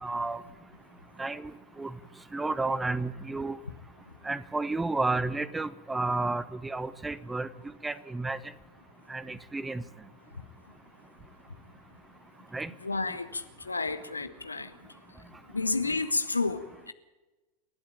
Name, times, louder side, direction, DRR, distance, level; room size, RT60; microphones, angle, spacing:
voice 1, 0.0-0.4 1.2-1.5 1.8-1.9 2.3-3.6 4.2-7.5 7.8-8.4 9.1-9.8 12.5-12.7, right 3 dB, 10° right, 1.1 m, -31 dB
voice 2, 12.8-14.7 15.5-16.9, left 3 dB, 80° left, 1.4 m, -31 dB
28.5 x 11.5 x 8.8 m
figure-of-eight pair, 90°, 0 cm